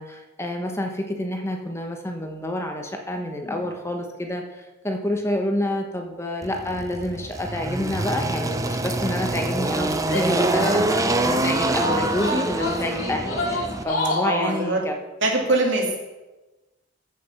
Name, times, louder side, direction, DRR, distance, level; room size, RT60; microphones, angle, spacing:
voice 1, 0.0-4.4 4.8-14.9, left 1 dB, 15° left, 3 dB, 1.1 m, -28 dB
Engine, 6.4-13.8, right 2 dB, 15° right, 0.7 m, -25 dB
Female speech woman speaking / Yell, 10.0-11.3 11.8-14.4, left 2 dB, 90° left, 2.7 m, -28 dB
voice 2, 14.2-14.8 15.2-16.0, right 2 dB, 65° right, 0 dB, 2.8 m, -22 dB
14.5 x 6.7 x 5.8 m, 1.1 s
head